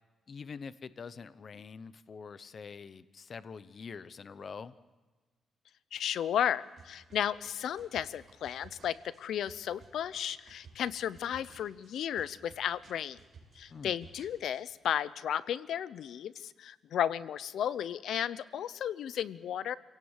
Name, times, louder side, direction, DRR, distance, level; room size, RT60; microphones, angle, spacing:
voice 1, 0.3-4.7 13.7-14.0, left 5 dB, 40° left, 15 dB, 0.8 m, -45 dB
voice 2, 5.9-13.2 13.6-19.7, left 10 dB, 70° left, 17 dB, 0.7 m, -34 dB
sound 1, 6.6-14.6, right 4 dB, 35° right, 4.6 m, -58 dB
27.0 x 17.5 x 8.1 m, 1.3 s
cardioid pair, 140°, 0 cm